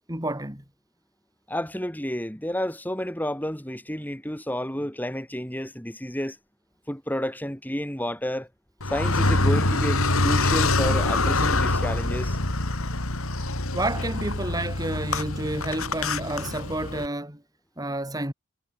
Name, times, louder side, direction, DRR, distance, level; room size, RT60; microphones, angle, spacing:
voice 1, 0.1-0.6 13.7-17.4 17.8-18.3, right 1 dB, 15° right, 4.7 m, -30 dB
voice 2, 1.5-6.4 6.9-8.5 8.9-12.4, equal, 10° left, 5.4 m, -30 dB
Car, 8.8-17.1, left 2 dB, 80° left, 3.9 m, -25 dB
head